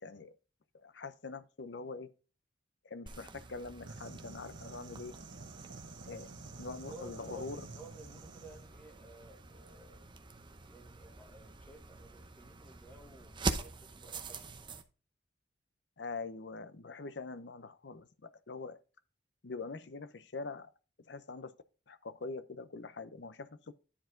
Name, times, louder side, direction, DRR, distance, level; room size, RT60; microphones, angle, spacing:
voice 1, 0.0-0.3 0.7-2.1 2.8-5.2 6.0-6.3 6.6-7.6 16.0-18.8 19.4-20.7 21.0-21.5 21.9-23.7, left 3 dB, 65° left, 0.7 m, -44 dB
sound 1, 3.1-14.8, right 3 dB, 25° right, 0.8 m, -44 dB
sound 2, 3.9-8.7, right 3 dB, 80° right, 1.3 m, -50 dB
voice 2, 6.9-10.1 10.6-14.6, right 1 dB, 10° left, 1.4 m, -54 dB
10.5 x 4.7 x 3.8 m
head